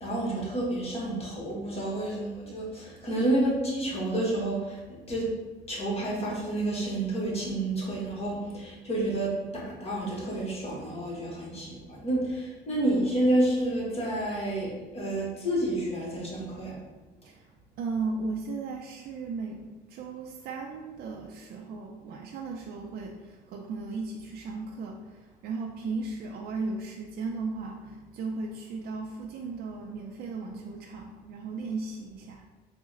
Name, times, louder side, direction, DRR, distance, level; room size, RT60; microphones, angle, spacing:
voice 1, 0.0-5.3 5.7-16.7, right 1 dB, 35° left, -4 dB, 1.2 m, -29 dB
voice 2, 17.8-19.6 19.9-23.2 23.5-25.0 25.4-32.4, right 3 dB, 65° right, 0 dB, 0.4 m, -35 dB
3.9 x 2.1 x 3.7 m, 1.2 s
cardioid pair, 110°, 17 cm